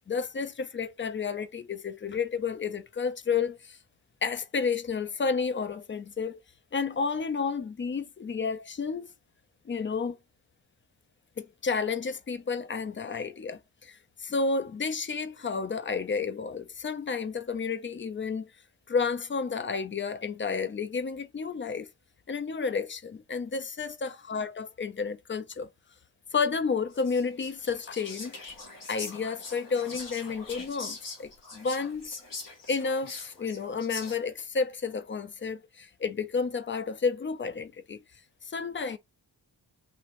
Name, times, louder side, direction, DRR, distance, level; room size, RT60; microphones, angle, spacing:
voice 1, 0.1-3.8 4.2-6.4 6.7-9.1 9.7-10.2 11.4-18.5 18.9-21.9 22.3-25.7 26.3-28.4 28.9-32.2 32.7-38.0 38.4-39.0, left 5 dB, 30° left, 0.3 m, -31 dB
Whispering, 26.9-34.4, left 3 dB, 50° left, 1.4 m, -43 dB
3.5 x 2.8 x 2.5 m
wide cardioid pair, 125°, 43 cm